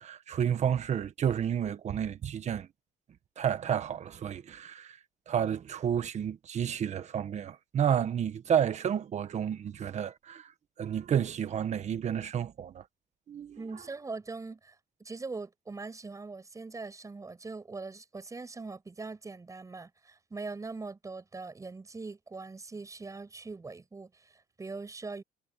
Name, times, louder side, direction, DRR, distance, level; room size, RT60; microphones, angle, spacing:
voice 1, 0.0-2.7 3.4-5.0 5.3-10.5 10.8-12.8 13.3-13.6, right 9 dB, 45° right, 1.6 m, -31 dB
voice 2, 13.5-25.2, right 3 dB, 20° right, 7.8 m, -42 dB
cardioid pair, 130°, 16 cm